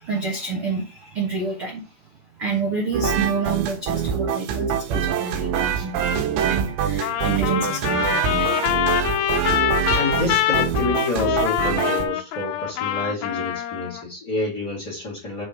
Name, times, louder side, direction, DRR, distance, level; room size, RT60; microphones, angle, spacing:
voice 1, 0.0-1.9 2.3-9.2, right 4 dB, 70° right, -2 dB, 1.2 m, -29 dB
sound 1, 2.9-12.1, right 7 dB, 85° right, 3.4 m, -24 dB
Trumpet, 7.0-14.0, left 12 dB, 85° left, 3.0 m, -24 dB
voice 2, 9.9-15.5, left 3 dB, 35° left, -2 dB, 1.9 m, -28 dB
6.4 x 4.9 x 5.0 m, 0.32 s
omnidirectional pair, 5.0 m